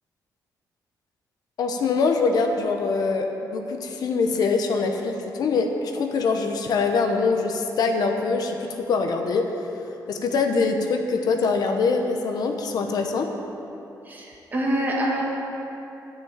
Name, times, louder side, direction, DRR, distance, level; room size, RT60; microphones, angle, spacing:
voice 1, 1.6-3.3 3.5-9.5 10.1-13.3, left 4 dB, 65° left, 4 dB, 0.9 m, -23 dB
voice 2, 14.0-15.2, right 1 dB, 25° right, -2 dB, 1.7 m, -25 dB
10.5 x 6.1 x 8.7 m, 2.9 s
wide cardioid pair, 175°, 7 cm